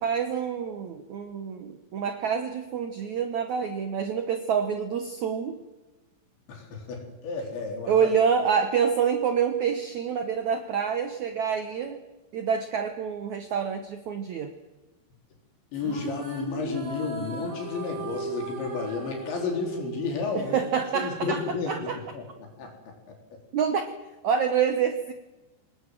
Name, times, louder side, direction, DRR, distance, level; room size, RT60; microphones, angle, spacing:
voice 1, 0.0-5.6 7.9-12.0 12.3-14.5 20.3-22.0 23.5-23.9 24.2-25.1, right 7 dB, 75° right, 8 dB, 1.7 m, -27 dB
voice 2, 6.5-7.9 15.7-20.6 21.0-22.7, left 4 dB, 90° left, 1 dB, 6.4 m, -32 dB
sound 1, 15.7-21.2, right 2 dB, 30° right, 3.3 m, -37 dB
26.0 x 19.5 x 7.7 m, 1.1 s
omnidirectional pair, 5.0 m